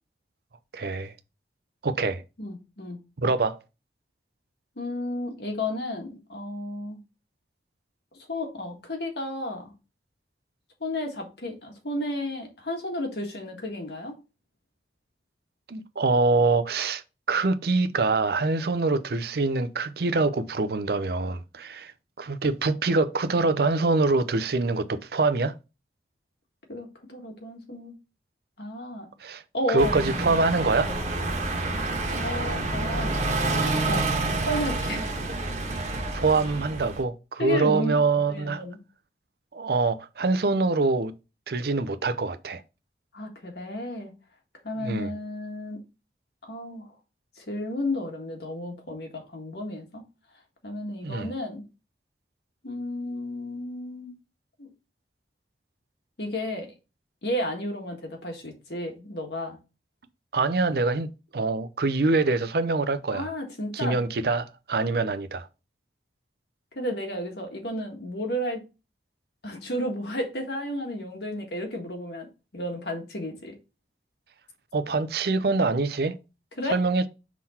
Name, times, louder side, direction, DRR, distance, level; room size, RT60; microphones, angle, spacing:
voice 1, 0.7-1.1 1.8-2.2 3.2-3.6 15.7-17.0 17.3-21.9 22.2-25.5 29.2-29.4 29.7-30.9 36.1-38.6 39.5-41.1 41.5-42.6 44.8-45.1 51.0-51.3 60.3-63.3 63.7-65.5 74.7-76.1 76.7-77.1, right 3 dB, 60° right, 0.6 m, -24 dB
voice 2, 2.4-3.0 4.8-7.0 8.3-9.7 10.8-14.2 26.7-28.0 28.6-29.1 29.5-30.0 32.2-33.5 33.9-34.1 34.5-35.1 37.4-38.8 43.1-44.1 44.6-45.8 46.4-46.9 47.4-50.0 50.6-51.6 52.6-54.1 54.6-54.7 56.2-56.7 57.2-59.6 63.1-64.0 66.7-68.6 69.4-72.3 72.5-73.5 76.6-76.8, left 1 dB, 65° left, 1.7 m, -32 dB
sound 1, 29.8-37.0, right 2 dB, 40° right, 1.4 m, -28 dB
5.9 x 3.8 x 4.2 m
head